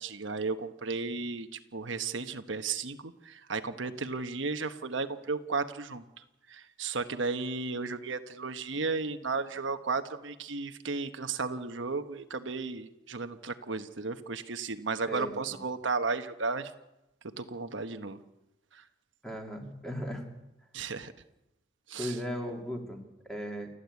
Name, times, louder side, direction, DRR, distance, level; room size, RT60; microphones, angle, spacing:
voice 1, 0.0-6.0 6.5-16.7 17.4-18.2 18.7-18.8 20.7-21.1 21.9-22.1, right 4 dB, 70° right, 8 dB, 1.1 m, -34 dB
voice 2, 19.2-20.3 22.0-23.7, equal, 5° left, 2 dB, 2.6 m, -37 dB
29.0 x 11.5 x 8.3 m, 0.92 s
head